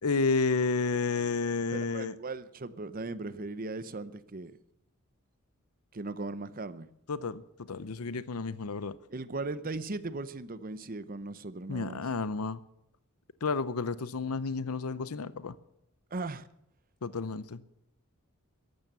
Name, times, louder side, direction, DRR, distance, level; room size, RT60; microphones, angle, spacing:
voice 1, 0.0-2.1 7.1-9.0 11.7-12.6 13.4-15.5 17.0-17.6, left 4 dB, 90° left, 0.7 m, -31 dB
voice 2, 1.7-4.5 5.9-6.9 9.1-12.0 16.1-16.5, right 3 dB, 40° right, 0.8 m, -38 dB
14.5 x 12.0 x 6.8 m
head